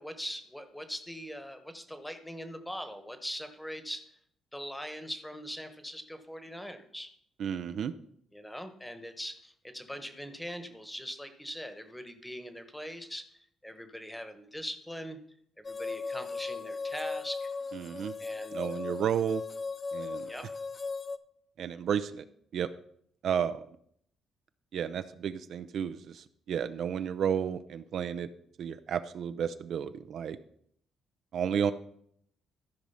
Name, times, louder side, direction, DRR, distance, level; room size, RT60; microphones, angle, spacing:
voice 1, 0.0-4.0 4.5-7.1 8.3-15.2 15.6-17.5 18.2-18.6 20.2-20.5, equal, 5° left, 8 dB, 1.1 m, -41 dB
voice 2, 7.4-7.9 17.7-18.1 18.5-19.4 19.9-20.3 21.6-22.2 22.5-22.7 23.2-23.6 24.7-28.3 28.6-30.4 31.3-31.7, right 8 dB, 65° right, 11 dB, 0.5 m, -32 dB
sound 1, 15.6-21.2, left 4 dB, 35° left, 0.6 m, -37 dB
13.5 x 5.1 x 5.6 m, 0.68 s
cardioid pair, 105°, 0 cm